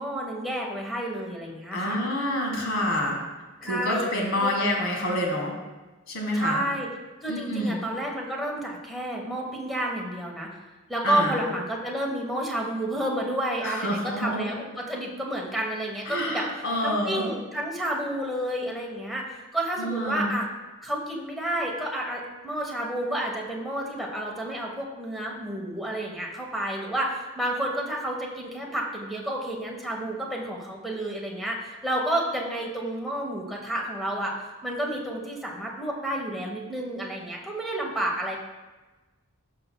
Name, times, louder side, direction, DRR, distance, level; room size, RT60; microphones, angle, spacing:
voice 1, 0.0-2.0 3.6-4.1 4.4-4.5 6.3-6.9 7.2-10.5 10.9-16.4 16.8-20.5 20.8-38.4, right 1 dB, ahead, -2 dB, 1.0 m, -30 dB
voice 2, 1.7-3.2 3.6-5.5 6.1-6.6 7.3-7.8 11.0-11.4 13.6-14.5 16.0-17.3 19.8-20.3, left 1 dB, 65° left, 0 dB, 1.5 m, -27 dB
11.5 x 5.6 x 2.2 m, 1.2 s
head